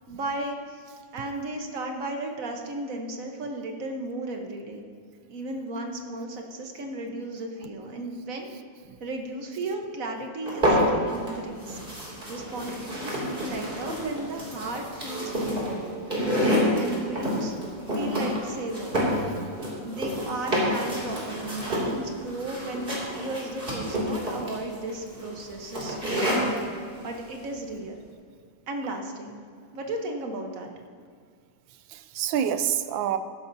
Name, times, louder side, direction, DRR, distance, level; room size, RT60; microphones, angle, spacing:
voice 1, 0.1-0.9 1.1-4.8 5.3-8.5 9.0-11.8 12.3-15.9 16.4-17.5 17.9-19.0 19.8-26.3 27.0-28.0 28.7-29.4 29.7-30.7, right 2 dB, 50° right, 3 dB, 1.4 m, -35 dB
sound 1, 10.5-11.3 11.6-26.6, equal, 25° right, 2.8 m, -28 dB
voice 2, 15.1-16.3 16.5-17.1 31.9-33.2, right 9 dB, 85° right, 11 dB, 1.4 m, -30 dB
15.0 x 11.5 x 2.7 m, 2.1 s
omnidirectional pair, 2.1 m